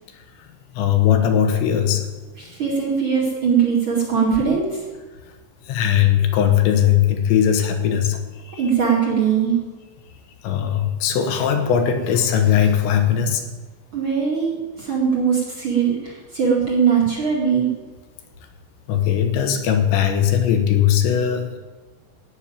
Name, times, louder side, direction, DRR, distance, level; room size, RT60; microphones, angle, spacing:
voice 1, 0.7-2.1 5.6-8.6 10.4-13.4 18.9-21.6, left 9 dB, 75° left, 6 dB, 3.2 m, -19 dB
voice 2, 2.4-4.8 8.5-9.6 13.9-17.7, right 6 dB, 40° right, -3 dB, 1.9 m, -20 dB
17.0 x 6.3 x 8.8 m, 1.3 s
omnidirectional pair, 5.7 m